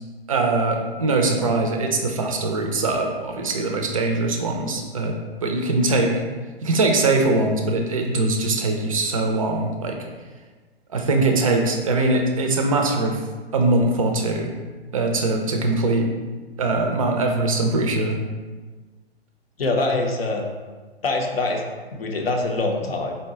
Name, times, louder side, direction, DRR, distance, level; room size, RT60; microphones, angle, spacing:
voice 1, 0.3-6.1 6.6-10.0 10.9-13.2 13.5-14.5 14.9-16.1 16.6-18.2, right 2 dB, 35° right, 3 dB, 0.4 m, -22 dB
voice 2, 19.6-20.4 21.0-21.6 21.9-23.2, left 2 dB, 65° left, 1 dB, 0.6 m, -24 dB
3.9 x 2.2 x 3.6 m, 1.4 s
figure-of-eight pair, 120°, 31 cm